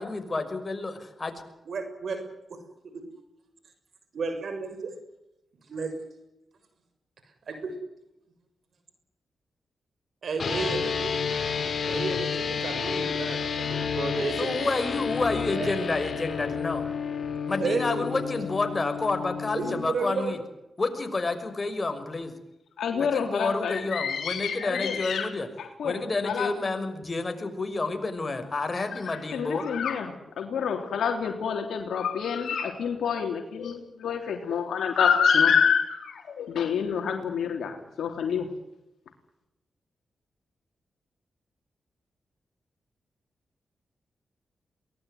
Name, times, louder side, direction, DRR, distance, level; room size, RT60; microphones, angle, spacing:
voice 1, 0.0-1.3 14.4-16.8 17.5-20.4 20.8-22.3 23.0-25.5 25.8-29.6, left 3 dB, 35° left, 7 dB, 6.1 m, -29 dB
voice 2, 1.6-2.2 2.5-2.6 2.9-3.0 4.1-5.0 5.6-5.9 7.5-7.7 10.2-11.2 11.8-14.7 15.2-15.7 16.4-16.5 17.6-18.2 19.5-20.3, right 4 dB, 70° right, 8 dB, 6.6 m, -32 dB
sound 1, 10.4-19.9, left 6 dB, 60° left, 4.6 m, -30 dB
voice 3, 22.8-25.3 25.6-26.5 28.7-38.5, left 7 dB, 80° left, 4 dB, 3.6 m, -27 dB
23.0 x 20.0 x 9.6 m, 0.91 s
cardioid pair, 50°, 0 cm